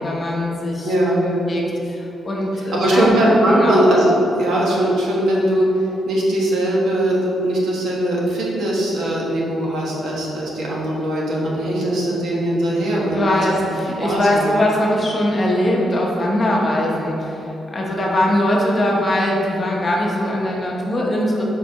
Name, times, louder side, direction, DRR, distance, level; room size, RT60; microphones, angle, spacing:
voice 1, 0.0-0.9 1.2-3.7 13.1-21.4, left 1 dB, 25° left, -2 dB, 0.8 m, -21 dB
voice 2, 0.8-1.5 2.5-5.6 6.1-13.3 14.0-14.5, right 1 dB, 65° right, -4 dB, 1.4 m, -20 dB
4.9 x 4.7 x 5.7 m, 3.0 s
wide cardioid pair, 170°, 0 cm